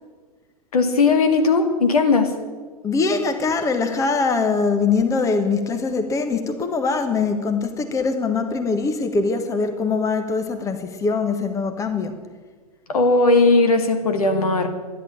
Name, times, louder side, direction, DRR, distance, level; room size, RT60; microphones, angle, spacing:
voice 1, 0.7-2.4 12.9-14.7, left 3 dB, 70° left, 7 dB, 2.2 m, -17 dB
voice 2, 2.8-12.3, left 4 dB, 15° left, 7 dB, 1.4 m, -22 dB
13.0 x 11.0 x 8.8 m, 1.4 s
figure-of-eight pair, 105°, 20 cm